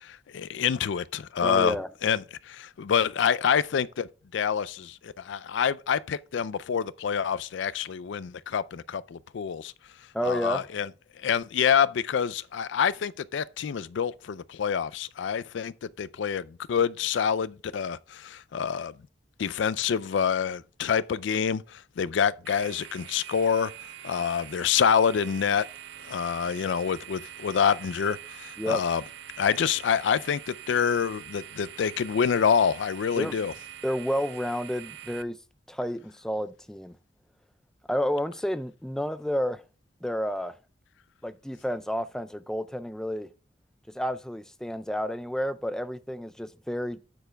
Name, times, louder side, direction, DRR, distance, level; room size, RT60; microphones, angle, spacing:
voice 1, 0.0-1.8 2.0-9.7 10.2-10.9 11.2-18.9 19.4-23.7 24.0-25.7 26.1-29.0 29.4-33.5, left 7 dB, 75° left, 0.4 m, -27 dB
voice 2, 1.4-1.9 10.1-10.7 28.6-28.8 33.2-33.5 33.8-35.4 35.7-37.0 37.9-39.6 40.0-40.6 41.2-43.3 43.9-47.0, equal, 5° left, 0.3 m, -30 dB
sound 1, 22.4-35.2, right 11 dB, 65° right, 0.6 m, -44 dB
12.5 x 9.0 x 2.2 m
head